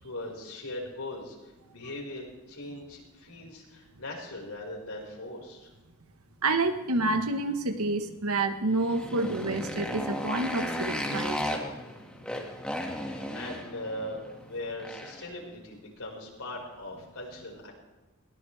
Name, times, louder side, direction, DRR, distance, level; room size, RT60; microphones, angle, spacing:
voice 1, 0.0-5.7 12.9-17.7, left 1 dB, 75° left, -1 dB, 5.8 m, -40 dB
voice 2, 6.4-11.4, right 2 dB, 80° right, 7 dB, 1.6 m, -28 dB
Motorcycle, 8.7-15.3, left 1 dB, 5° left, 2.2 m, -35 dB
22.0 x 18.0 x 3.6 m, 1.2 s
head